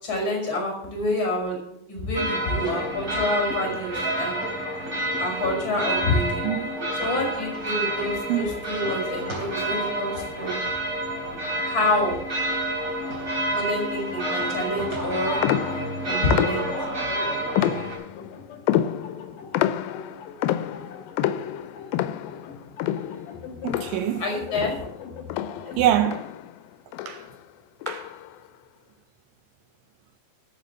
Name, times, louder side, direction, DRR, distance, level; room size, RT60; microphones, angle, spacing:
voice 1, 0.0-4.4 5.2-6.5 7.0-10.6 11.6-12.2 13.5-15.4 16.1-16.7 24.2-24.7, left 1 dB, 30° left, 6.0 m, -27 dB
sound 1, 2.1-17.9, right 1 dB, 25° right, 4.0 m, -29 dB
voice 2, 6.4-6.9 8.3-8.5 13.0-13.1 23.6-24.2 25.8-26.3 27.1-27.2 27.9-28.1, right 11 dB, 80° right, 2.3 m, -25 dB
sound 2, 15.4-17.0 17.6-18.3 18.7-24.3 24.6-26.6 26.9-27.3 27.8-28.3, left 12 dB, 85° left, 2.4 m, -28 dB
sound 3, 18.1-26.2, left 6 dB, 65° left, 2.8 m, -42 dB
12.5 x 7.7 x 7.4 m
omnidirectional pair, 4.2 m